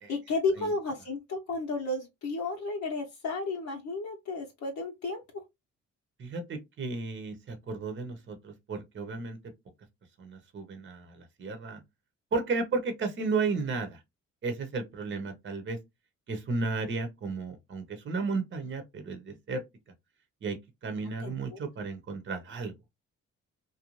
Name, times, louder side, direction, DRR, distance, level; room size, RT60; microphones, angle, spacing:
voice 1, 0.1-5.4 21.2-21.6, left 3 dB, 65° left, 0.8 m, -33 dB
voice 2, 6.2-9.4 10.2-11.8 12.3-14.0 14.4-15.8 16.3-19.6 20.4-22.7, right 4 dB, 40° right, 0.8 m, -33 dB
2.5 x 2.2 x 2.9 m
cardioid pair, 90°, 30 cm